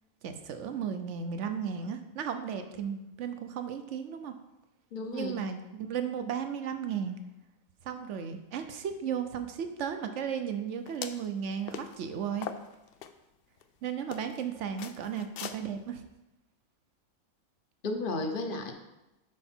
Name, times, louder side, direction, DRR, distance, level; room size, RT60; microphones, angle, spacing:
voice 1, 0.2-4.3 5.1-7.2 7.8-12.5 13.8-16.0, right 7 dB, 60° right, 7 dB, 1.0 m, -35 dB
voice 2, 4.9-5.4 17.8-18.7, left 2 dB, 45° left, 5 dB, 0.9 m, -33 dB
sound 1, 10.9-11.3 11.7-12.0 12.4-13.1 13.6-13.7 14.1-14.4 14.8-15.6, left 8 dB, 75° left, 0.5 m, -40 dB
9.8 x 4.5 x 4.4 m, 0.97 s
omnidirectional pair, 1.5 m